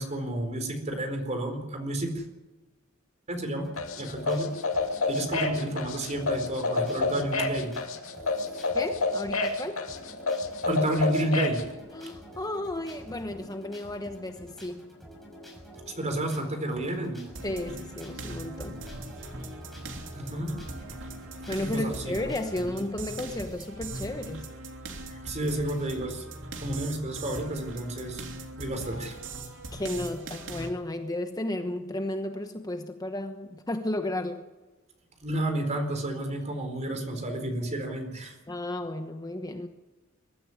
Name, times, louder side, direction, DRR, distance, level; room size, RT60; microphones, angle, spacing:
voice 1, 0.0-2.2 3.3-3.7 3.9-4.5 5.1-7.7 10.6-11.6 15.9-17.2 20.1-20.5 21.6-22.1 22.6-22.7 25.1-26.2 26.6-28.2 28.6-29.2 35.2-38.4, right 1 dB, 35° right, 6 dB, 4.2 m, -31 dB
sound 1, 3.6-22.6, equal, ahead, 6.0 m, -49 dB
sound 2, 3.8-11.6, left 3 dB, 70° left, 2.7 m, -28 dB
voice 2, 8.7-9.8 11.9-14.9 17.4-18.8 21.5-24.5 29.7-34.5 38.5-39.7, left 1 dB, 20° left, 6 dB, 1.1 m, -33 dB
sound 3, 17.4-30.7, right 2 dB, 65° right, 3.1 m, -40 dB
22.5 x 13.0 x 9.8 m, 1.2 s
head